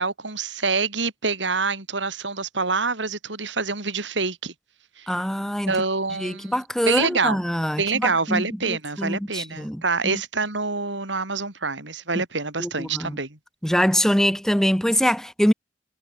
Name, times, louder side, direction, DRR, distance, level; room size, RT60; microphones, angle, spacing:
voice 1, 0.0-4.5 5.0-5.1 5.7-6.6 6.9-7.4 7.8-13.4, right 4 dB, 75° right, 4.6 m, -26 dB
voice 2, 5.1-5.8 6.2-10.2 12.6-13.2 13.6-15.5, equal, 5° left, 1.0 m, -24 dB
head